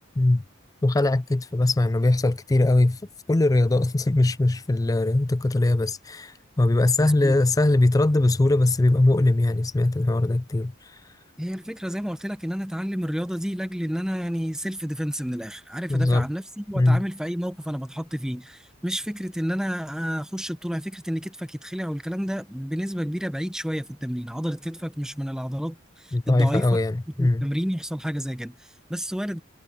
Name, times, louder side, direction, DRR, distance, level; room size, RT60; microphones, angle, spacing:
voice 1, 0.8-3.0 3.3-11.0 15.9-16.3 16.7-17.0 26.1-27.5, left 2 dB, 15° left, 0.4 m, -21 dB
voice 2, 7.0-7.4 11.4-26.7 27.2-29.4, equal, 5° right, 0.9 m, -30 dB
head